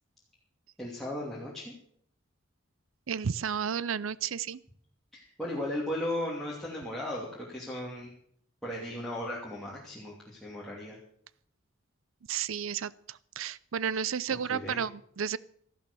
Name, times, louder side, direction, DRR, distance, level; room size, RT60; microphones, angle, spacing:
voice 1, 0.8-1.7 5.1-8.1 8.6-11.0 13.9-14.0 14.5-14.8, left 1 dB, ahead, -6 dB, 2.8 m, -36 dB
voice 2, 3.1-4.6 12.3-15.4, right 7 dB, 90° right, 20 dB, 0.6 m, -32 dB
14.0 x 12.0 x 6.9 m, 0.65 s
head